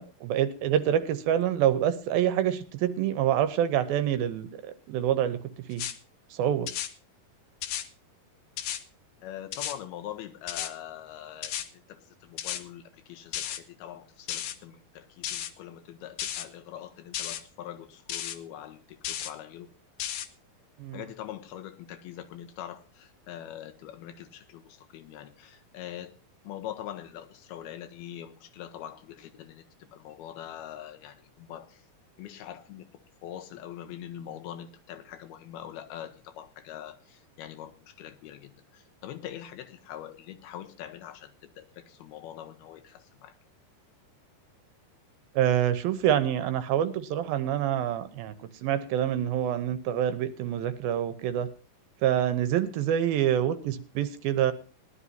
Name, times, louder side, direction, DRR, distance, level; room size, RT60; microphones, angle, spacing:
voice 1, 0.0-5.8 6.3-6.7 20.8-21.0 45.4-51.5 52.0-54.5, right 10 dB, 85° right, 11 dB, 2.6 m, -26 dB
sound 1, 5.7-6.0 6.7-6.9 7.6-7.9 8.6-8.8 9.5-9.8 10.5-10.7 11.4-11.7 12.4-12.6 13.3-13.6 14.3-14.6 15.2-15.5 16.2-16.5 17.1-17.4 18.1-18.4 19.0-19.3 20.0-20.3, left 11 dB, 70° left, 2.3 m, -33 dB
voice 2, 9.2-19.7 20.9-26.2 26.4-31.9 32.2-32.9 33.2-43.4, left 11 dB, 90° left, 6 dB, 2.9 m, -43 dB
20.0 x 11.5 x 2.7 m, 0.35 s
omnidirectional pair, 4.3 m